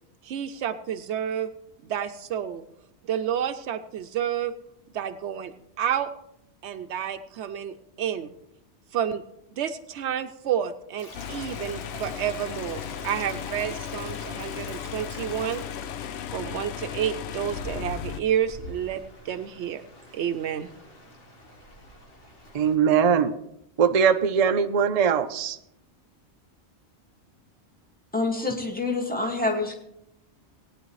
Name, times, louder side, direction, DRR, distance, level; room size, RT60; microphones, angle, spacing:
voice 1, 0.2-1.5 1.9-2.6 3.1-4.5 4.9-6.1 6.6-8.3 8.9-9.2 9.5-15.6 16.3-19.0 19.3-19.8 20.1-20.7, right 9 dB, 80° right, 10 dB, 0.9 m, -30 dB
Stream, 11.0-22.7, equal, 55° left, 1.8 m, -46 dB
sound 1, 11.1-18.2, left 9 dB, 75° left, 0.8 m, -36 dB
voice 2, 22.5-23.3 23.8-25.6, right 7 dB, 45° right, 8 dB, 0.5 m, -21 dB
voice 3, 28.1-29.8, left 3 dB, 10° left, 0 dB, 1.8 m, -27 dB
18.0 x 9.6 x 3.1 m, 0.78 s
omnidirectional pair, 1.2 m